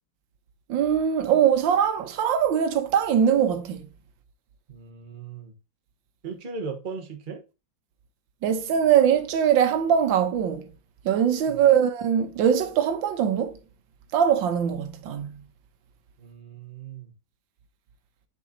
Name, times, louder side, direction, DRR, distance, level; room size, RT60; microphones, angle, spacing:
voice 1, 0.7-3.9 8.4-10.7 11.0-13.6 14.1-15.4, right 8 dB, 85° right, 1.6 m, -22 dB
voice 2, 4.7-5.5 6.2-7.4 11.5-11.7 16.2-17.1, right 5 dB, 30° right, 1.1 m, -38 dB
7.6 x 5.4 x 2.7 m
omnidirectional pair, 2.0 m